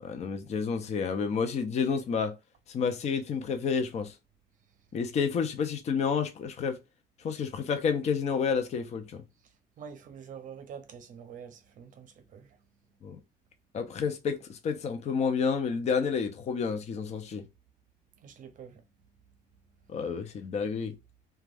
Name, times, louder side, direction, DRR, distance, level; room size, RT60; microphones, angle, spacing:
voice 1, 0.0-2.3 2.7-4.1 4.9-6.8 7.2-9.2 13.0-13.2 13.7-17.4 19.9-20.9, left 6 dB, 40° left, 0.5 m, -30 dB
voice 2, 9.8-12.6 18.2-18.8, right 7 dB, 50° right, 0.6 m, -46 dB
2.5 x 2.3 x 3.3 m
cardioid pair, 110°, 17 cm